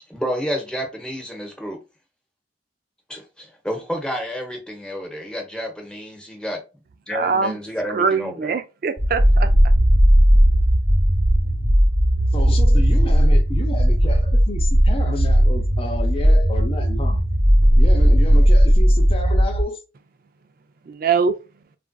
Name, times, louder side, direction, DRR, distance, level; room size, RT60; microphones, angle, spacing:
voice 1, 0.1-1.8 3.1-6.6 7.1-8.6, equal, 5° left, 0.9 m, -30 dB
voice 2, 7.1-7.6 7.9-9.5 20.9-21.3, right 5 dB, 50° right, 0.3 m, -22 dB
low frequency layer, 9.0-19.6, equal, 25° right, 0.9 m, -16 dB
voice 3, 12.3-17.2 17.7-19.8, left 1 dB, 30° left, 0.6 m, -31 dB
3.3 x 2.6 x 2.2 m
head